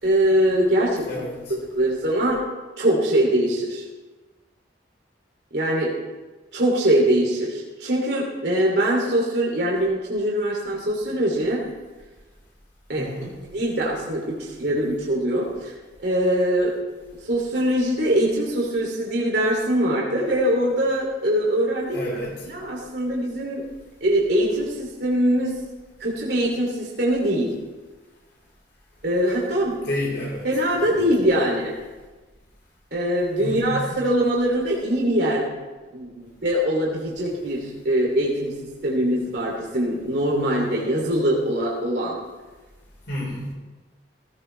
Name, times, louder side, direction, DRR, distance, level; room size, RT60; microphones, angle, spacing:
voice 1, 0.0-1.2 1.5-2.4 2.8-3.8 5.5-5.9 6.5-11.6 12.9-13.1 13.5-15.7 16.0-16.7 17.2-22.0 22.5-23.6 24.0-25.5 26.0-27.5 29.0-29.8 30.4-31.7 32.9-35.5 35.9-38.5 38.8-42.2, right 1 dB, 60° right, -3 dB, 2.8 m, -22 dB
voice 2, 1.0-1.5 13.0-13.3 21.9-22.3 29.8-30.4 30.7-31.1 33.4-33.8 43.1-43.5, left 1 dB, 65° left, -4 dB, 4.4 m, -30 dB
17.5 x 16.0 x 3.3 m, 1.2 s
head